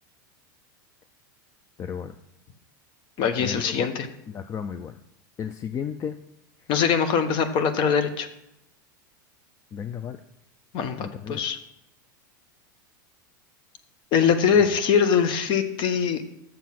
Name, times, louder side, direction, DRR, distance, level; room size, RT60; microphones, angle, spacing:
voice 1, 1.8-2.1 3.4-3.9 4.3-5.0 5.4-6.2 9.7-10.2 11.0-11.4 14.5-14.7, left 7 dB, 30° left, 10 dB, 0.4 m, -33 dB
voice 2, 3.2-4.1 6.7-8.3 10.7-11.6 14.1-16.2, left 7 dB, 45° left, 9 dB, 1.1 m, -22 dB
7.3 x 7.0 x 5.9 m, 0.84 s
hypercardioid pair, 105°, 11 cm